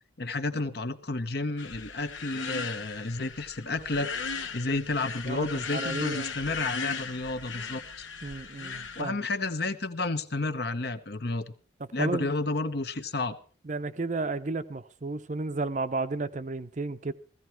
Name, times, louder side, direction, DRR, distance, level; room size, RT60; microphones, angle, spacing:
voice 1, 0.2-8.1 9.0-11.5 11.9-13.4, left 2 dB, 55° left, 1.0 m, -31 dB
sound 1, 1.6-9.0, left 5 dB, 80° left, 1.0 m, -37 dB
voice 2, 5.3-6.3 8.2-9.2 11.8-12.3 13.6-17.1, right 3 dB, 40° right, 0.6 m, -33 dB
16.0 x 15.0 x 4.5 m
head